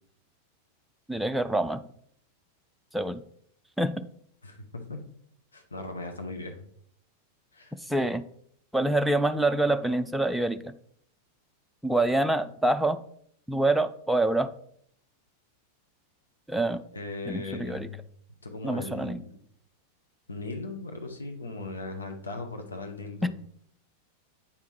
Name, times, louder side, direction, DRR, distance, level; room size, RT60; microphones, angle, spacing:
voice 1, 1.1-1.8 2.9-3.2 3.8-4.1 7.9-8.3 8.7-10.8 11.8-13.0 13.5-14.5 16.5-16.8 17.3-17.9 18.6-19.2, right 2 dB, ahead, 8 dB, 0.4 m, -26 dB
voice 2, 4.4-5.0 5.5-6.7 7.5-7.7 16.9-18.0 18.4-19.4 20.3-23.3, left 2 dB, 75° left, 4 dB, 0.9 m, -38 dB
8.4 x 3.5 x 4.4 m, 0.66 s
figure-of-eight pair, 90°, 0 cm